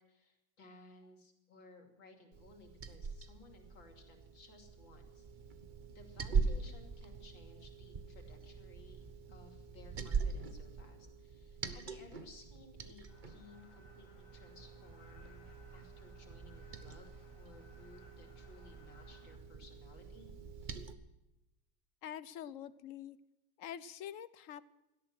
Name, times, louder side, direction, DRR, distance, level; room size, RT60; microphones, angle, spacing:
voice 1, 0.0-5.3 5.9-20.3, left 3 dB, 80° left, 4 dB, 3.5 m, -59 dB
Liquid, 2.3-20.9, right 5 dB, 35° right, 0.8 m, -42 dB
sound 1, 13.1-19.4, left 2 dB, 45° left, 3.5 m, -64 dB
voice 2, 22.0-23.2 23.6-24.6, left 10 dB, 60° left, 16 dB, 0.9 m, -45 dB
17.5 x 12.5 x 6.2 m, 0.96 s
omnidirectional pair, 2.1 m